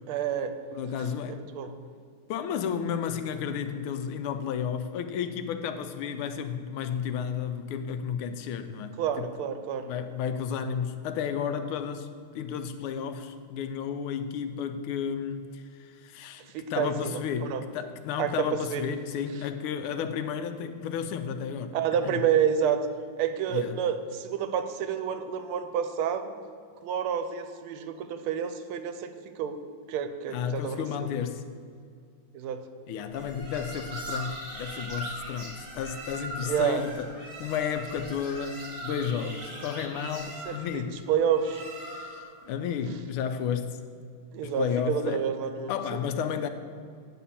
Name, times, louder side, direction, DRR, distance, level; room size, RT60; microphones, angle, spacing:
voice 1, 0.1-0.6 1.3-1.7 9.0-9.9 16.5-17.6 18.2-18.3 18.7-18.8 21.7-22.8 23.2-26.3 26.8-29.1 29.4-29.6 29.9-31.1 32.3-32.6 36.5-36.8 40.5-41.6 44.3-45.7, right 8 dB, 85° right, 1.5 m, -29 dB
voice 2, 0.7-1.4 2.3-9.3 9.8-16.4 16.7-21.8 22.0-22.2 23.5-23.8 30.3-31.4 32.9-37.1 37.4-41.0 41.9-43.8 44.4-45.3 45.7-46.5, left 7 dB, 85° left, 1.5 m, -32 dB
sound 1, 33.1-42.3, right 1 dB, 45° right, 2.0 m, -40 dB
9.1 x 4.2 x 7.0 m
omnidirectional pair, 2.3 m